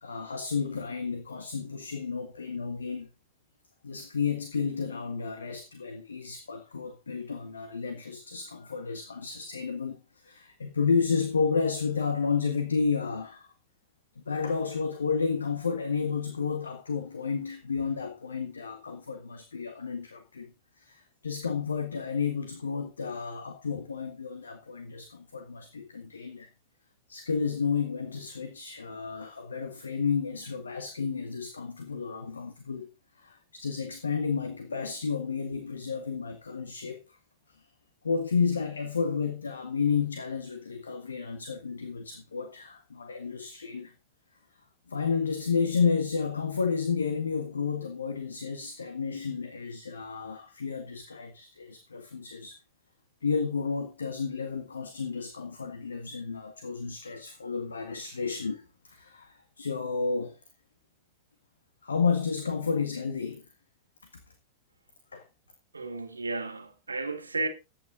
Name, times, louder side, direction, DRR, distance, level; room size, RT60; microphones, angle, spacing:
voice 1, 0.0-3.1 3.8-13.5 14.3-20.5 20.8-26.5 27.1-32.9 33.2-37.0 38.0-43.9 44.9-52.6 53.2-60.4 61.8-63.4 65.1-65.2, left 5 dB, 75° left, 1.5 m, -31 dB
voice 2, 65.7-67.5, right 3 dB, 80° right, 2.0 m, -33 dB
14.5 x 9.0 x 3.9 m
figure-of-eight pair, 90°, 0 cm